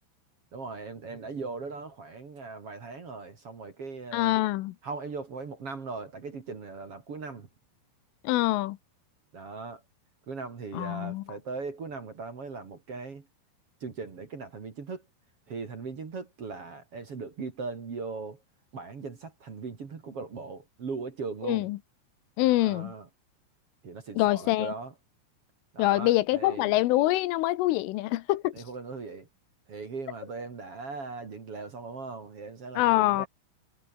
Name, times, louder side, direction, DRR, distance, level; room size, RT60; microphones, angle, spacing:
voice 1, 0.5-4.4 4.8-7.5 9.3-9.8 10.3-13.2 13.8-15.0 15.5-18.4 18.7-21.7 22.4-23.1 23.8-24.9 25.7-26.8 28.5-29.3 29.7-33.3, right 4 dB, 40° right, 2.6 m, -39 dB
voice 2, 4.1-4.7 8.2-8.8 10.7-11.2 21.4-21.8 22.4-22.9 24.2-24.7 25.8-28.5 32.8-33.3, left 17 dB, 80° left, 3.4 m, -25 dB
omnidirectional pair, 5.9 m